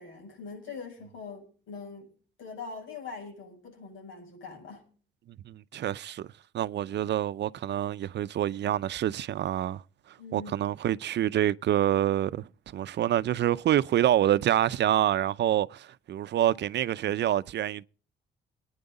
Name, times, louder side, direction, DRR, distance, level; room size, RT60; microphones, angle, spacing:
voice 1, 0.0-2.1 2.4-4.9 10.2-10.6, left 4 dB, 80° left, 7.8 m, -42 dB
voice 2, 5.5-6.3 6.5-9.8 10.3-12.5 12.7-17.8, right 11 dB, 60° right, 0.6 m, -27 dB
21.5 x 9.8 x 4.1 m
cardioid pair, 90°, 20 cm